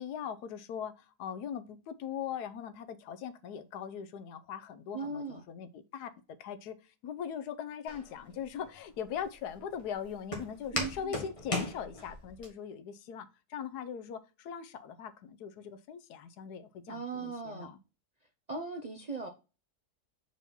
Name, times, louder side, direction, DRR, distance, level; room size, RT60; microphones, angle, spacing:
voice 1, 0.0-6.1 6.4-6.8 7.0-17.8, left 8 dB, 85° left, 1.2 m, -40 dB
voice 2, 4.9-5.4 10.7-11.1 16.9-17.7 18.5-19.3, right 4 dB, 40° right, 0.5 m, -38 dB
Walk footsteps, 7.9-12.5, left 2 dB, 20° left, 1.8 m, -38 dB
5.3 x 4.8 x 4.1 m
omnidirectional pair, 1.7 m